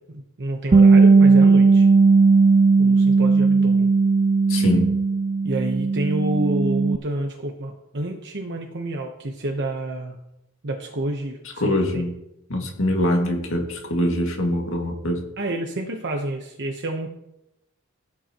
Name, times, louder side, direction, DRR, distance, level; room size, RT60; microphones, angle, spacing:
voice 1, 0.0-1.9 2.8-3.9 5.4-10.2 10.6-12.0 15.4-17.1, right 1 dB, 55° right, 2 dB, 1.1 m, -29 dB
Bass guitar, 0.7-7.0, right 4 dB, 25° right, 0.3 m, -16 dB
voice 2, 4.5-4.9 11.6-12.1 12.5-15.2, left 1 dB, 65° left, 2 dB, 2.1 m, -23 dB
16.5 x 8.0 x 3.0 m, 0.85 s
head